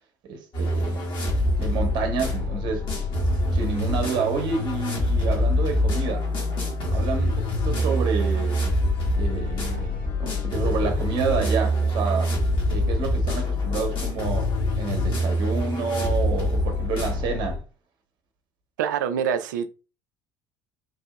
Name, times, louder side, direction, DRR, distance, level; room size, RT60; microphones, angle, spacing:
voice 1, 0.3-1.0 1.6-2.9 3.5-6.2 6.9-8.6 9.2-9.9 10.2-12.3 12.7-17.6, right 5 dB, 50° right, 0.9 m, -29 dB
sound 1, 0.5-17.6, left 1 dB, 50° left, 1.4 m, -25 dB
voice 2, 18.8-19.7, right 8 dB, 75° right, 0.3 m, -25 dB
3.2 x 2.7 x 2.2 m
hypercardioid pair, 60°, 10 cm